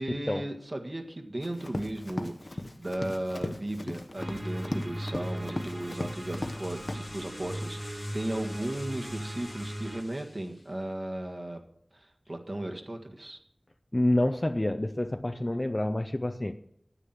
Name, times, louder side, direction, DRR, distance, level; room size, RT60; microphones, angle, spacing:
voice 1, 0.0-11.6 11.9-13.4, right 1 dB, 50° right, 3 dB, 1.6 m, -36 dB
Run, 1.4-6.6 6.9-7.0, left 1 dB, 55° left, 1.0 m, -37 dB
sound 1, 4.1-10.0, equal, 30° right, 1.8 m, -38 dB
sound 2, 5.2-10.8, left 2 dB, 90° left, 1.6 m, -50 dB
voice 2, 13.9-16.5, left 1 dB, 35° left, 6 dB, 0.6 m, -28 dB
9.9 x 8.5 x 7.5 m, 0.72 s
wide cardioid pair, 45°, 0 cm